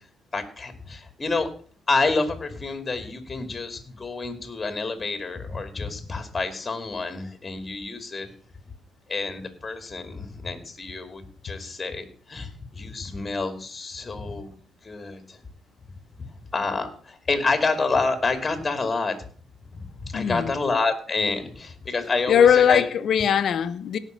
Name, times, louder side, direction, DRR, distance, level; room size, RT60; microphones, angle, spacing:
voice 1, 0.3-1.5 1.9-8.3 9.1-14.5 14.8-15.4 16.5-19.2 19.7-22.8, left 3 dB, 25° left, 2.6 m, -28 dB
voice 2, 20.1-20.6 22.3-24.0, left 8 dB, 65° left, 1.1 m, -20 dB
17.0 x 5.8 x 6.6 m
cardioid pair, 90°, 0 cm